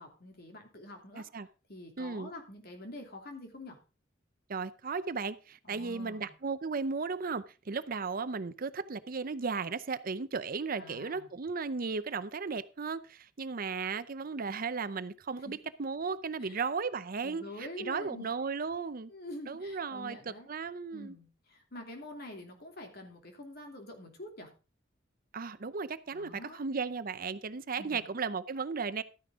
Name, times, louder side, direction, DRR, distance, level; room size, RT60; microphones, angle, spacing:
voice 1, 0.0-3.8 5.6-6.3 10.8-11.3 15.4-15.6 16.4-16.6 17.2-18.3 19.1-20.5 20.9-24.5 26.1-26.7 27.8-28.0, left 1 dB, 55° left, 2.8 m, -46 dB
voice 2, 1.1-1.5 2.0-2.3 4.5-19.1 19.5-20.2 20.5-21.1 25.3-29.0, right 5 dB, 50° right, 0.6 m, -35 dB
12.5 x 9.7 x 3.6 m
head